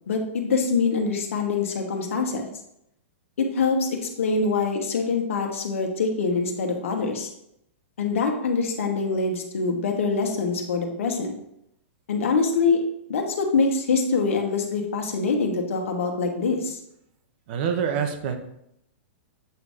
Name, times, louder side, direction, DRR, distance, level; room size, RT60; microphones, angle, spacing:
voice 1, 0.1-2.4 3.4-7.3 8.0-11.3 12.1-12.8 13.1-16.8, left 4 dB, 80° left, 3 dB, 1.2 m, -24 dB
voice 2, 17.5-18.4, right 7 dB, 50° right, 6 dB, 0.8 m, -26 dB
7.9 x 2.7 x 4.8 m, 0.77 s
hypercardioid pair, 145°, 7 cm